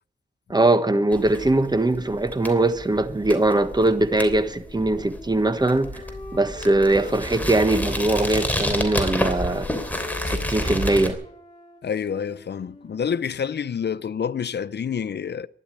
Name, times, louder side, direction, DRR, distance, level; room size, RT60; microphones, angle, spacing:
voice 1, 0.5-6.0 6.3-9.7 10.2-11.2, right 2 dB, 20° right, 1.3 m, -21 dB
sound 1, 1.1-11.1, left 1 dB, 10° left, 3.1 m, -30 dB
Wind instrument woodwind instrument, 4.6-8.3 8.6-13.9, left 3 dB, 30° left, 3.8 m, -42 dB
voice 2, 11.8-15.5, left 7 dB, 60° left, 0.7 m, -28 dB
12.5 x 11.0 x 9.8 m
cardioid pair, 75°, 20 cm